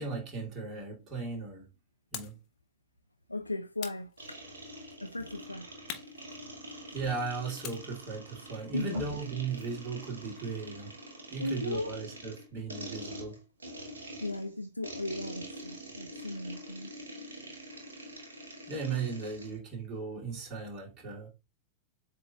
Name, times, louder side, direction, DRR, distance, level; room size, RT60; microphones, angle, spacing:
voice 1, 0.0-1.7 2.1-2.4 6.9-11.0 11.3-13.4 18.7-21.3, right 4 dB, 30° right, 2.3 m, -37 dB
sound 1, 2.1-2.5 3.8-4.7 5.9-7.0 7.6-9.9, left 9 dB, 40° left, 0.9 m, -46 dB
voice 2, 3.3-4.1 5.0-5.7 8.7-9.1 11.4-12.0 14.2-16.9, left 2 dB, 85° left, 0.3 m, -36 dB
sound 2, 4.2-19.6, equal, 75° right, 1.1 m, -45 dB
7.6 x 3.0 x 2.3 m
figure-of-eight pair, 90°, 0 cm